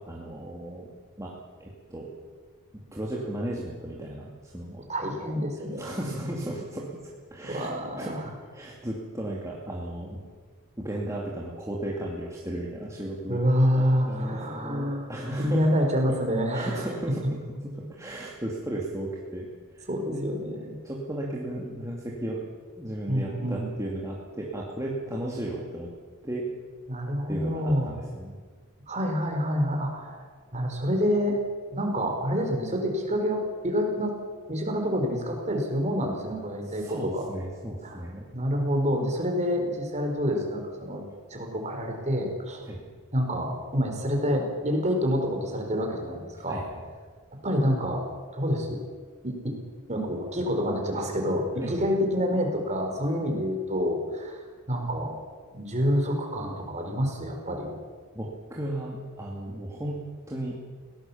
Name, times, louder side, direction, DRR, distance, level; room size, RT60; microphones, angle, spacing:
voice 1, 0.1-0.9 1.2-1.3 1.6-2.1 2.9-4.8 5.8-7.7 8.0-10.2 10.8-13.4 13.8-15.7 16.5-17.2 17.9-20.3 20.8-22.4 22.8-25.9 26.2-26.5 27.3-28.4 36.7-38.2 42.7-42.8 46.5-46.8 51.5-51.7 58.1-60.0 60.3-60.6, right 1 dB, 15° right, -3 dB, 2.4 m, -35 dB
voice 2, 4.9-5.9 7.4-8.2 13.3-15.1 15.4-16.8 19.9-20.6 23.1-23.7 26.9-28.0 28.9-30.2 30.5-31.4 31.7-34.2 34.5-37.3 37.8-38.0 38.3-41.0 41.3-42.6 43.1-46.6 47.4-48.0 48.3-48.8 49.2-49.5 49.9-55.1 55.5-57.7, equal, 30° right, 3 dB, 4.3 m, -27 dB
22.0 x 17.5 x 7.2 m, 1.5 s
head